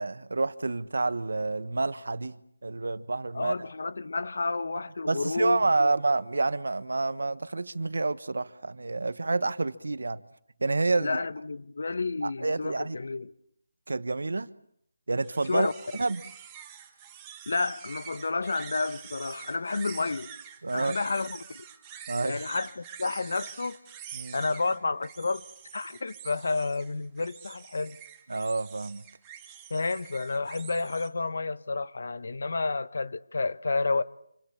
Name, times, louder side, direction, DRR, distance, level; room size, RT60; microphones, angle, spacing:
voice 1, 0.0-2.4 2.6-3.5 5.1-10.2 10.6-11.2 12.2-13.0 13.9-14.5 15.1-16.2 20.6-21.0 22.1-22.4 24.1-24.4 28.3-29.0, right 3 dB, 75° right, 1.2 m, -28 dB
voice 2, 3.3-5.9 11.0-13.3 15.5-15.7 17.5-20.3 20.7-21.6 22.2-23.8 24.3-25.4 25.7-28.0 29.7-34.0, left 3 dB, 60° left, 1.3 m, -30 dB
sound 1, 15.2-31.1, right 9 dB, 15° right, 2.0 m, -46 dB
27.0 x 26.0 x 7.3 m
figure-of-eight pair, 170°, 0 cm